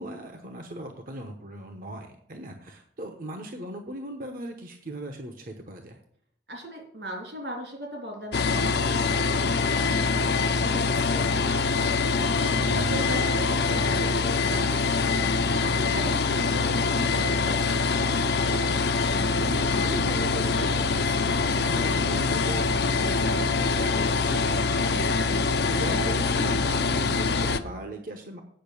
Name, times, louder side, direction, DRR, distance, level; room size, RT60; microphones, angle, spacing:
voice 1, 0.0-6.0 12.6-13.2 19.4-28.4, right 1 dB, 50° right, 5 dB, 0.9 m, -38 dB
voice 2, 6.5-17.6 17.9-18.3, equal, 70° right, 0 dB, 3.1 m, -39 dB
sound 1, 8.3-27.6, left 4 dB, 65° left, 0.6 m, -24 dB
8.8 x 5.6 x 7.0 m, 0.64 s
head